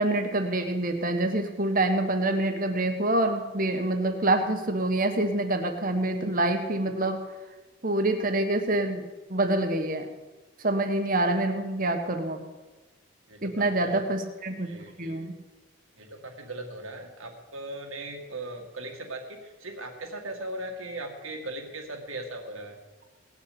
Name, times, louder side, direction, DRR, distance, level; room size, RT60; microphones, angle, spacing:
voice 1, 0.0-7.2 7.8-9.0 9.3-10.1 10.6-12.4 13.4-14.7 15.0-15.3, right 2 dB, 40° right, 6 dB, 1.5 m, -26 dB
voice 2, 13.3-14.0 14.6-15.3 16.0-22.8, right 2 dB, 80° right, 2 dB, 2.2 m, -39 dB
18.5 x 7.1 x 8.6 m, 1.2 s
head